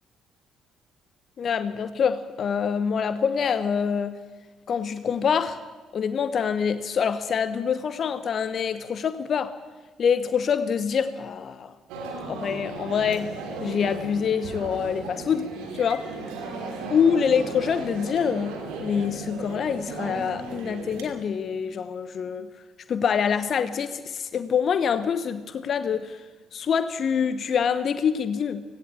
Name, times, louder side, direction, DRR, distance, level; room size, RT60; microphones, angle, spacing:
voice 1, 1.4-4.2 4.7-5.6 5.9-9.5 10.0-11.7 12.3-16.1 16.9-22.5 22.9-26.2 26.5-28.6, left 7 dB, 50° left, 12 dB, 1.0 m, -25 dB
sound 1, 11.9-21.0, right 3 dB, 70° right, 3.1 m, -36 dB
18.0 x 17.0 x 8.7 m, 1.3 s
figure-of-eight pair, 45°, 0 cm